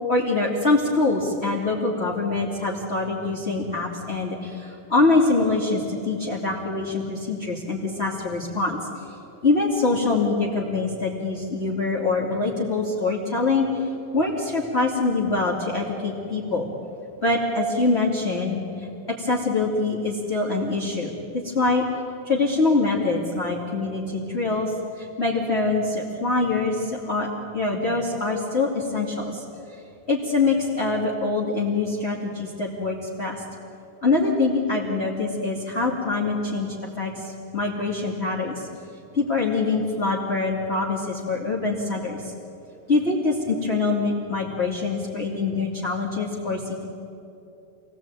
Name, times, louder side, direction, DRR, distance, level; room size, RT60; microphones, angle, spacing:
voice 1, 0.1-8.8 9.4-13.9 14.1-16.7 17.2-21.8 22.2-27.3 27.5-29.4 29.7-29.8 30.1-33.4 34.0-38.7 39.1-42.3 42.9-46.8, left 3 dB, 20° left, -3 dB, 2.0 m, -24 dB
26.5 x 20.0 x 9.0 m, 2.9 s
omnidirectional pair, 4.6 m